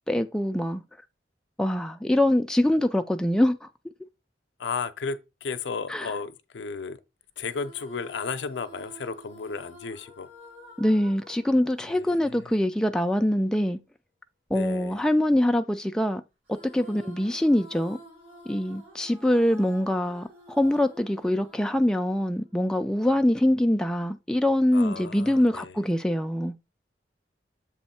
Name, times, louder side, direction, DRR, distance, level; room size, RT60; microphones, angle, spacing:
voice 1, 0.1-0.8 1.6-3.7 5.9-6.1 10.8-13.8 14.5-16.2 16.5-18.0 18.5-26.5, left 1 dB, 5° left, 0.3 m, -24 dB
voice 2, 4.6-7.0 7.4-10.3 11.9-12.5 14.5-15.0 24.7-25.8, left 5 dB, 80° left, 0.6 m, -34 dB
sound 1, 7.4-13.0 16.5-22.9, equal, 80° right, 2.5 m, -50 dB
7.2 x 3.1 x 4.3 m
head